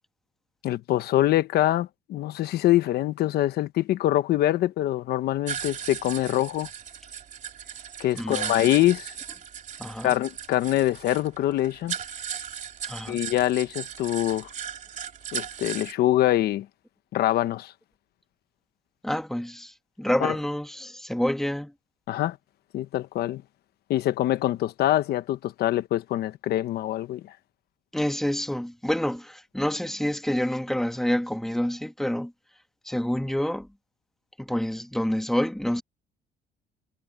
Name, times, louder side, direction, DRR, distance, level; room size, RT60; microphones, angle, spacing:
voice 1, 0.6-6.7 8.0-9.1 10.0-11.9 13.1-14.5 15.3-16.7 17.1-17.7 20.2-20.3 22.1-22.4 22.7-23.4 23.9-27.2, left 14 dB, 70° left, 1.1 m, -24 dB
sound 1, 5.5-15.9, right 8 dB, 50° right, 3.1 m, -37 dB
voice 2, 8.1-8.6 9.8-10.1 12.8-13.2 19.0-21.7 27.9-32.3 32.8-33.7 34.4-35.8, equal, ahead, 1.7 m, -28 dB
cardioid pair, 110°, 17 cm